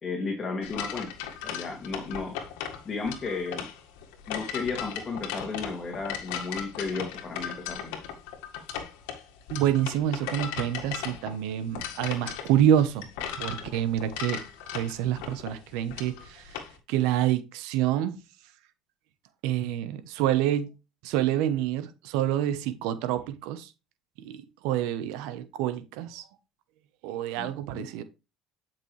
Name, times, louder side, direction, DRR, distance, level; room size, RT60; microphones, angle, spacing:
voice 1, 0.0-1.1 1.4-2.3 2.8-3.7 4.3-8.0 27.4-27.9, left 4 dB, 25° left, 2.3 m, -34 dB
sound 1, 0.6-16.7, left 8 dB, 90° left, 1.7 m, -37 dB
voice 2, 9.5-13.1 13.4-14.4 14.7-16.6 16.9-18.2 19.4-20.7 21.0-23.7 24.2-26.2 27.0-28.0, right 11 dB, 80° right, 0.9 m, -27 dB
10.5 x 6.0 x 3.3 m
cardioid pair, 115°, 0 cm